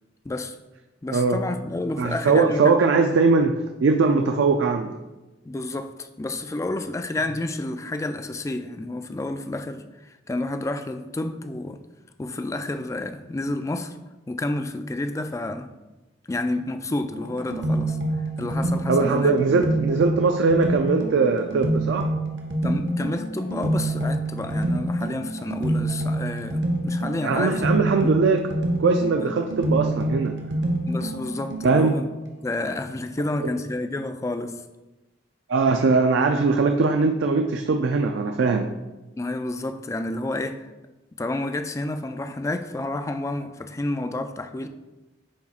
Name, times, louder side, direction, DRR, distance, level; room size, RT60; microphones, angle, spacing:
voice 1, 0.2-0.6 1.0-2.7 5.4-11.8 12.2-14.0 14.3-15.7 16.3-18.0 18.4-19.3 22.6-27.7 29.2-29.3 30.9-32.1 32.4-34.6 39.2-40.7 41.2-44.7, left 2 dB, 15° left, 8 dB, 0.3 m, -30 dB
voice 2, 2.0-5.0 18.4-18.5 18.9-22.1 27.2-28.4 28.8-30.3 31.6-32.0 33.4-33.5 35.5-38.7, right 4 dB, 85° right, 5 dB, 0.4 m, -21 dB
sound 1, 17.1-32.0, right 1 dB, 65° right, 1.0 m, -27 dB
10.5 x 4.1 x 2.4 m, 1.1 s
head